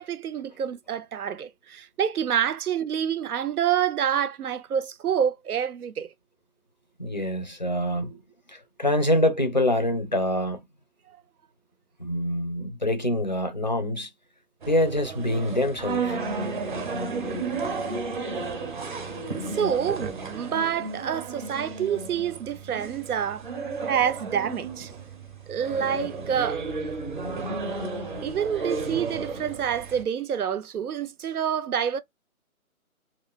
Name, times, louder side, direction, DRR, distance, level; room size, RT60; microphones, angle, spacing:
voice 1, 0.0-6.1 19.3-23.4 23.9-25.0 25.5-26.6 28.2-32.0, right 8 dB, 85° right, 0.6 m, -27 dB
voice 2, 7.0-8.2 8.5-10.6 12.0-14.1 14.7-16.2, left 1 dB, 35° left, 0.4 m, -25 dB
sound 1, 14.6-30.0, right 3 dB, 35° right, 0.7 m, -33 dB
2.5 x 2.4 x 3.5 m
hypercardioid pair, 160°, 43 cm